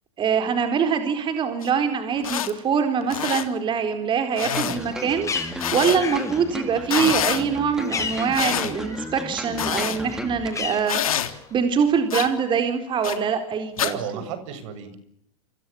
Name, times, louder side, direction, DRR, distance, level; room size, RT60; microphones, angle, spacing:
voice 1, 0.2-11.0 11.5-14.0, right 6 dB, 25° right, 8 dB, 4.1 m, -24 dB
sound 1, 1.6-1.7 2.2-2.5 3.0-3.4 4.4-4.8 5.6-6.0 6.8-7.4 8.3-8.7 9.6-10.0 10.9-11.3 12.1-12.3 13.0-13.2 13.8-13.9, left 10 dB, 85° left, 3.5 m, -26 dB
sound 2, 4.5-10.8 11.1-11.2, equal, 5° right, 3.5 m, -35 dB
Bird, 4.7-9.3 9.6-11.5, left 5 dB, 15° left, 5.6 m, -34 dB
voice 2, 13.8-15.0, right 9 dB, 60° right, 12 dB, 7.1 m, -33 dB
29.5 x 26.0 x 7.2 m, 0.73 s
hypercardioid pair, 120°, 18 cm